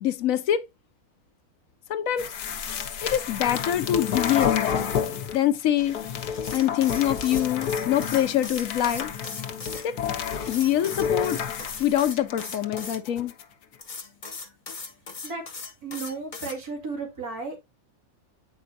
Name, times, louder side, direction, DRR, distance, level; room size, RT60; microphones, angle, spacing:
voice 1, 0.0-0.6 1.9-2.3 3.0-4.9 5.3-6.0 6.5-9.1 9.8-9.9 10.5-11.4 11.8-13.3, left 11 dB, 70° left, 1.0 m, -24 dB
sound 1, 2.2-5.4 5.8-13.4, left 7 dB, 85° left, 1.4 m, -30 dB
sound 2, 6.3-9.8 10.4-13.0 13.8-16.6, left 4 dB, 35° left, 1.0 m, -38 dB
voice 2, 15.2-17.6, right 4 dB, 75° right, 2.9 m, -34 dB
8.7 x 5.2 x 2.7 m
omnidirectional pair, 1.6 m